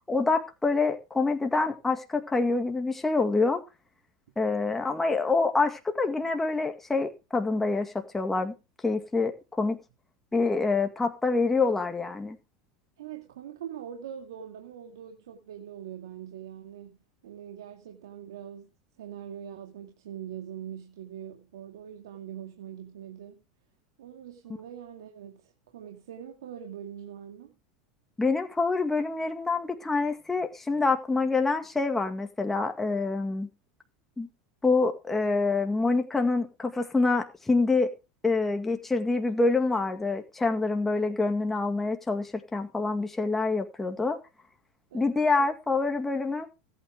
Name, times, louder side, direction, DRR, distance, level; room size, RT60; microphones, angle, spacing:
voice 1, 0.1-3.6 4.4-8.5 8.8-9.3 9.6-9.8 10.3-12.4 28.2-33.5 34.2-34.3 34.6-37.9 38.2-44.2 44.9-46.5, left 3 dB, 10° left, 2.0 m, -26 dB
voice 2, 13.0-17.0 17.2-18.7 19.0-23.4 24.0-27.6 44.9-45.5, right 9 dB, 85° right, 2.2 m, -43 dB
19.5 x 9.1 x 3.6 m
hypercardioid pair, 105°, 2 cm